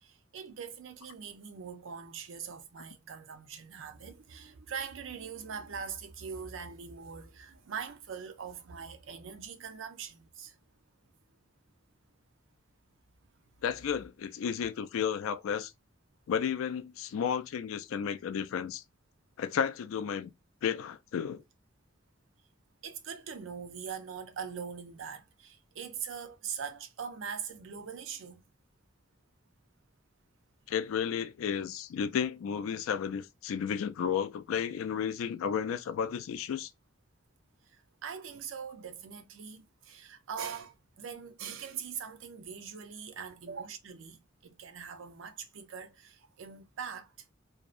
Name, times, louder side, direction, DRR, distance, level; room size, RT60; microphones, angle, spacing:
voice 1, 0.0-10.6 22.8-28.4 37.7-47.3, right 6 dB, 75° right, 0.5 m, -42 dB
voice 2, 13.6-15.7 16.3-18.8 19.4-20.3 20.6-21.4 30.7-36.7, left 7 dB, 85° left, 0.3 m, -32 dB
2.6 x 2.0 x 2.3 m
head